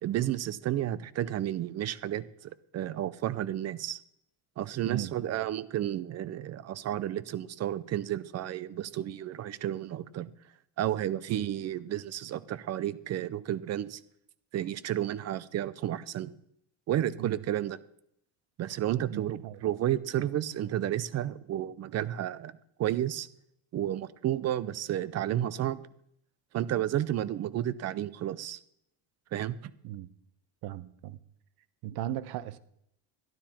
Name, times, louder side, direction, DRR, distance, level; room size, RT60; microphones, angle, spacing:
voice 1, 0.0-4.0 4.6-10.3 10.8-14.0 14.5-16.3 16.9-17.8 18.6-22.5 22.8-23.3 23.7-25.9 26.5-28.6 29.3-29.7, right 12 dB, 40° right, 0.6 m, -32 dB
voice 2, 4.8-5.4 11.3-11.5 17.2-17.4 19.1-19.6 29.8-30.1 30.6-31.2 31.8-32.6, right 13 dB, 65° right, 0.9 m, -37 dB
12.5 x 12.0 x 4.4 m
cardioid pair, 125°, 40 cm